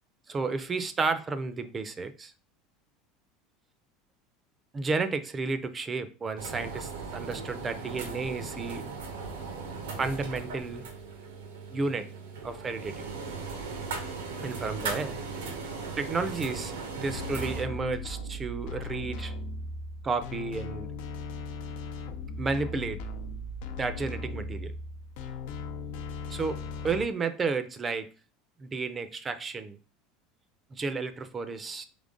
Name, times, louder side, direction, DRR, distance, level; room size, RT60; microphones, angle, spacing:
voice 1, 0.3-2.3 4.7-8.8 10.0-10.9 11.7-12.1 12.4-13.0 14.4-15.2 16.0-19.3 20.0-20.9 22.4-23.0 23.8-24.7 26.3-28.1 28.6-29.8 30.7-31.9, right 4 dB, 30° right, 11 dB, 0.6 m, -32 dB
sound 1, 6.4-17.6, right 4 dB, 80° right, 0.9 m, -38 dB
sound 2, 17.1-27.0, left 2 dB, 70° left, 0.7 m, -38 dB
3.7 x 3.2 x 3.7 m, 0.36 s
hypercardioid pair, 85°, 0 cm